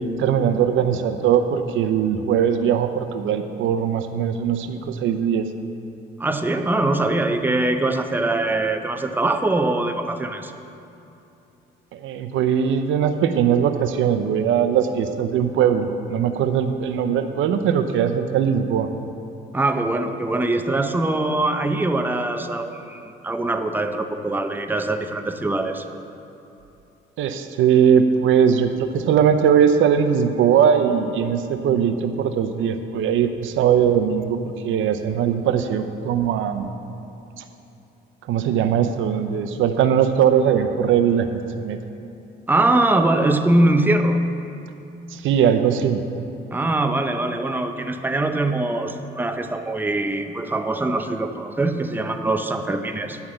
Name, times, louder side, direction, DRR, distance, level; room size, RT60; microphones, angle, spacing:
voice 1, 0.0-5.5 11.9-18.9 27.2-34.4 34.6-36.7 37.4-37.5 38.3-41.8 45.1-46.0, right 8 dB, 80° right, 8 dB, 0.6 m, -20 dB
voice 2, 6.2-10.5 19.5-25.8 42.5-44.2 46.5-53.2, right 2 dB, 10° right, 7 dB, 0.6 m, -22 dB
9.9 x 5.8 x 7.7 m, 2.8 s
cardioid pair, 90°, 20 cm